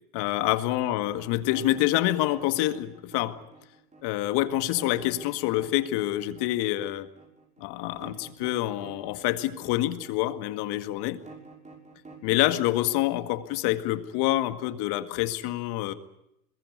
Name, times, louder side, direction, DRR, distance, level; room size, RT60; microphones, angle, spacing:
voice 1, 0.1-3.4 4.0-7.1 7.6-11.2 12.2-15.9, left 15 dB, 55° left, 10 dB, 2.0 m, -27 dB
sound 1, 1.4-14.3, right 3 dB, 15° right, 6.6 m, -49 dB
22.5 x 21.0 x 9.5 m, 0.83 s
supercardioid pair, 115°, 47 cm